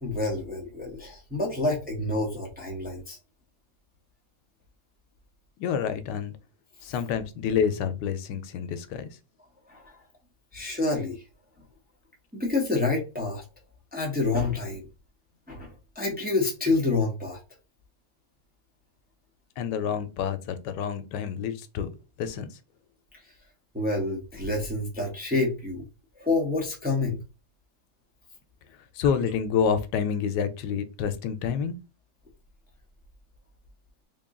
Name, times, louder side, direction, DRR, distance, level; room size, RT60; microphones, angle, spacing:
voice 1, 0.0-3.2 9.7-9.9 10.5-11.2 12.3-13.4 13.9-14.9 15.5-17.4 23.7-25.8 26.1-27.2, left 3 dB, 10° right, 0.7 m, -28 dB
voice 2, 5.6-6.3 6.8-9.1 19.6-21.9 22.2-22.5 29.0-31.7, left 7 dB, 90° left, 1.2 m, -28 dB
3.6 x 2.3 x 3.6 m
omnidirectional pair, 1.8 m